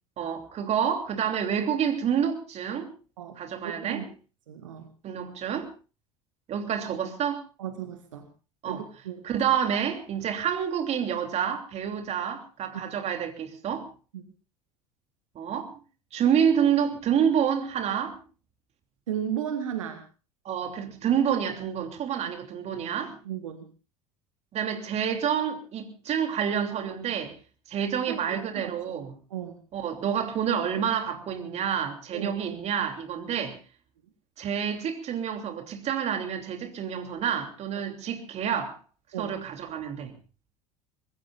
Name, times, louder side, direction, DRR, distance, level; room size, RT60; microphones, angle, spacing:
voice 1, 0.2-2.9 3.4-4.1 5.0-5.7 6.5-7.4 8.6-8.8 9.2-13.9 15.3-15.8 16.1-18.2 20.4-23.2 24.5-27.3 27.7-29.1 29.7-33.6 34.4-38.8 39.2-40.1, right 8 dB, 40° right, 3.1 m, -28 dB
voice 2, 3.6-4.1 4.5-4.9 7.6-8.3 8.7-9.2 14.1-14.2 19.1-20.0 23.3-23.7 28.1-28.8 29.3-29.6 32.1-32.4 39.1-39.4, right 9 dB, 70° right, 1.8 m, -35 dB
25.0 x 20.5 x 2.5 m
figure-of-eight pair, 70°, 17 cm